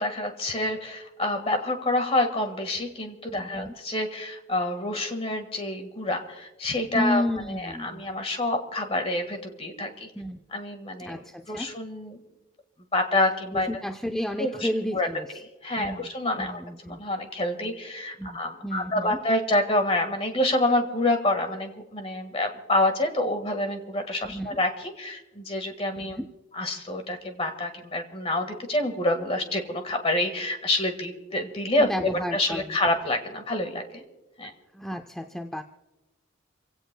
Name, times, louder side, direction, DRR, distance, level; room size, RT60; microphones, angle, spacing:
voice 1, 0.0-10.1 10.5-11.2 11.5-12.2 12.9-13.7 14.4-16.6 16.9-26.2 26.5-34.0 34.4-34.5, left 1 dB, 30° left, 6 dB, 1.7 m, -27 dB
voice 2, 3.3-3.7 6.9-8.0 10.2-10.4 11.0-11.7 13.5-15.4 15.8-16.1 16.4-17.0 18.2-19.2 24.2-24.6 26.1-26.3 31.8-32.8 34.7-35.6, left 1 dB, 5° left, 4 dB, 0.4 m, -32 dB
28.5 x 17.0 x 2.3 m, 1.1 s
head